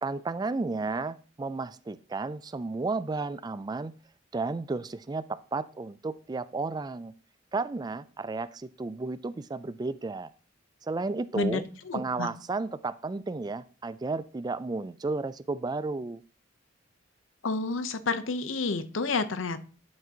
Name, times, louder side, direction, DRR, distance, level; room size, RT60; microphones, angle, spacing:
voice 1, 0.0-3.9 4.3-5.3 5.5-7.1 7.5-10.3 10.8-11.6 11.9-16.2, right 3 dB, 20° right, 15 dB, 0.3 m, -33 dB
voice 2, 11.3-12.3 17.4-19.6, left 4 dB, 90° left, 12 dB, 0.7 m, -30 dB
10.5 x 5.8 x 2.8 m, 0.38 s
head